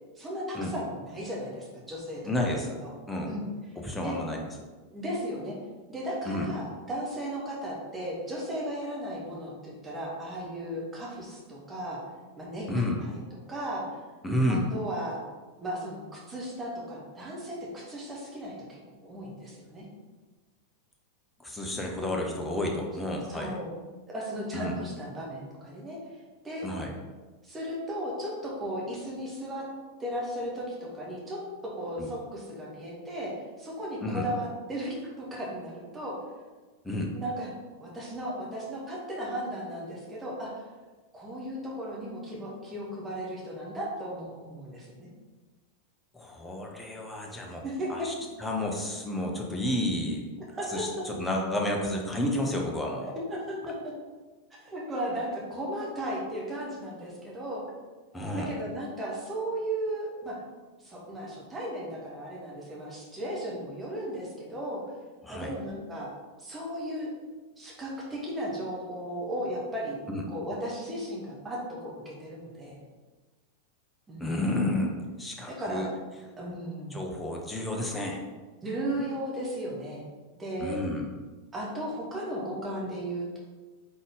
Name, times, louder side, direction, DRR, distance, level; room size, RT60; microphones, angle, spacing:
voice 1, 0.2-2.9 3.3-3.5 4.0-4.1 4.9-5.6 5.9-12.0 12.4-12.7 13.0-13.2 13.5-13.8 14.5-15.2 15.6-19.9 23.3-23.7 24.1-26.0 26.4-26.7 27.4-29.7 30.0-33.3 33.6-36.2 37.1-37.5 37.8-40.5 41.1-45.1 47.6-48.1 50.5-51.0 53.3-53.9 54.6-57.6 58.3-60.4 60.8-64.8 65.3-66.1 66.4-67.1 67.6-70.0 70.3-72.8 74.1-74.4 75.4-75.9 76.4-77.0 78.6-80.0 80.4-80.8 81.5-83.4, right 1 dB, 15° right, -4 dB, 1.4 m, -35 dB
voice 2, 2.2-2.7 3.1-3.3 3.8-4.4 6.3-6.5 12.7-13.0 14.2-14.7 21.4-23.5 24.5-24.8 26.6-26.9 32.0-32.1 34.0-34.3 36.8-37.1 46.1-47.6 47.9-48.1 48.4-50.2 50.7-53.1 58.1-58.5 65.2-65.5 70.1-70.2 74.2-74.9 75.2-75.9 76.9-78.2 80.6-81.1, left 1 dB, 5° left, -1 dB, 0.8 m, -30 dB
4.0 x 3.7 x 3.6 m, 1.3 s
figure-of-eight pair, 90°, 0 cm